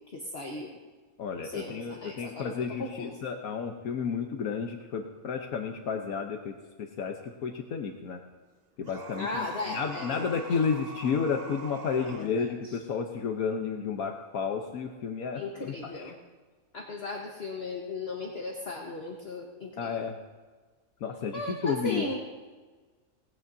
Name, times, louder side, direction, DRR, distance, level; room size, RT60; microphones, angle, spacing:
voice 1, 0.1-0.7 1.4-2.5 2.8-3.2 9.2-10.2 12.0-12.5 15.3-16.2 16.7-19.9 21.3-22.2, left 2 dB, 45° left, 0 dB, 1.5 m, -37 dB
voice 2, 1.2-8.2 8.8-16.1 19.8-20.2 21.0-22.1, left 6 dB, 80° left, 3 dB, 1.4 m, -32 dB
sound 1, 8.8-12.3, right 4 dB, 40° right, 0.6 m, -44 dB
19.0 x 15.5 x 2.7 m, 1.4 s
omnidirectional pair, 1.5 m